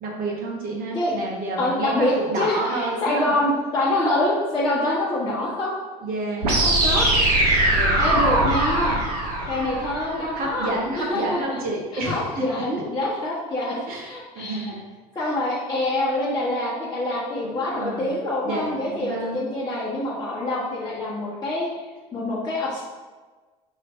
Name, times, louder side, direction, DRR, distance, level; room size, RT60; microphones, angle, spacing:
voice 1, 0.0-3.3 6.0-6.5 7.7-8.0 10.3-12.6 13.9-14.8 15.2-15.3 17.4-18.1 18.4-19.4, right 2 dB, 50° right, -2 dB, 1.3 m, -30 dB
voice 2, 1.6-5.7 6.6-7.1 8.0-9.0 9.5-10.7 11.1-11.4 12.1-14.7 15.1-21.7 22.1-22.8, left 1 dB, 20° left, -9 dB, 1.3 m, -25 dB
sound 1, 6.4-10.4, right 1 dB, 80° right, 0.9 m, -21 dB
5.5 x 3.1 x 2.6 m, 1.3 s
hypercardioid pair, 75°, 20 cm